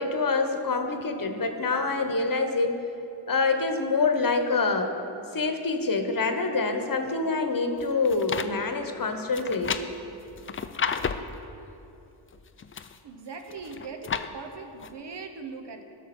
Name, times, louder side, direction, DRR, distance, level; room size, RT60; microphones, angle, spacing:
voice 1, 0.0-2.8 3.3-4.9 5.3-9.8, left 3 dB, 45° left, 6 dB, 1.1 m, -26 dB
sound 1, 7.8-8.5 9.3-11.3 12.3-13.0 13.5-14.3 14.8-14.9, left 6 dB, 25° left, 0.5 m, -32 dB
voice 2, 13.0-15.8, right 4 dB, 60° right, 5 dB, 1.0 m, -40 dB
11.5 x 6.2 x 4.3 m, 2.7 s
supercardioid pair, 45°, 48 cm